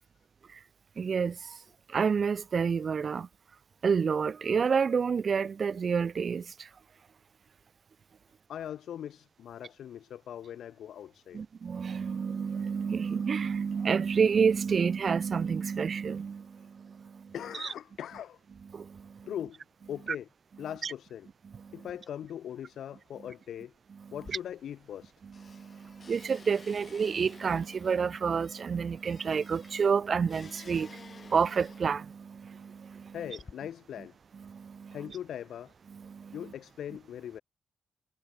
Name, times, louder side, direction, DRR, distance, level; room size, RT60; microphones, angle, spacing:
voice 1, 1.0-1.6 1.9-3.3 3.8-6.7 11.3-17.3 17.6-17.7 18.7-19.3 20.8-20.9 21.5-21.9 24.3-24.4 25.4-33.2 34.4-35.0 35.9-36.4, right 6 dB, 55° right, 0.3 m, -29 dB
voice 2, 8.5-11.4 16.6-16.7 17.3-18.4 19.2-19.6 19.9-20.3 20.6-21.3 21.7-23.7 24.1-25.1 33.1-34.1 34.9-35.7 36.3-37.4, left 10 dB, 80° left, 1.0 m, -40 dB
sound 1, 24.1-25.1 25.3-32.2 32.9-33.5, left 5 dB, 45° left, 1.3 m, -53 dB
cardioid pair, 70°, 0 cm